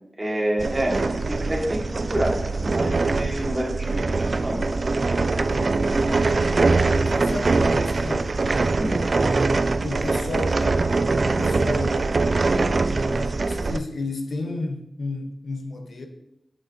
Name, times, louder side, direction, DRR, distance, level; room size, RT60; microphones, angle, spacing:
voice 1, 0.2-4.6 8.7-9.0, right 1 dB, 25° right, 1.5 m, -28 dB
sound 1, 0.6-13.8, right 3 dB, 55° right, 0.3 m, -23 dB
voice 2, 6.0-6.4 6.9-8.4 9.8-10.9 11.2-16.1, left 2 dB, 80° left, 0.7 m, -33 dB
7.4 x 6.4 x 2.6 m
wide cardioid pair, 75°, 0 cm